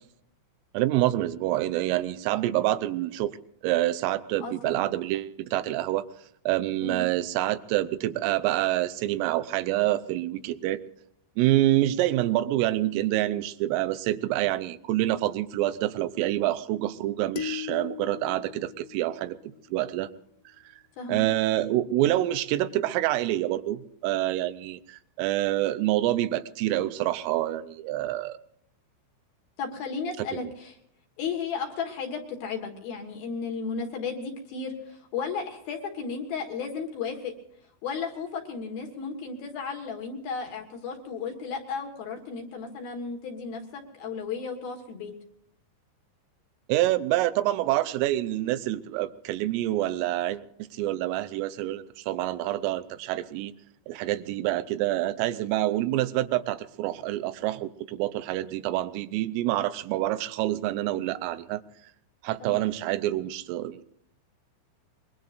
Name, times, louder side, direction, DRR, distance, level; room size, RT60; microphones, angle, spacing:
voice 1, 0.7-3.3 3.6-6.0 6.5-10.8 11.4-19.4 19.7-20.1 21.1-28.4 30.2-30.3 46.7-53.5 53.9-61.6 62.2-63.8, right 15 dB, 85° right, 11 dB, 3.4 m, -27 dB
voice 2, 4.4-4.8 6.8-7.0 21.0-21.3 29.6-30.7 31.2-37.3 37.8-45.1 62.4-62.7, left 5 dB, 60° left, 2 dB, 3.0 m, -34 dB
sound 1, 17.4-19.8, left 11 dB, 80° left, 2.6 m, -38 dB
24.0 x 22.0 x 2.6 m, 0.72 s
omnidirectional pair, 5.7 m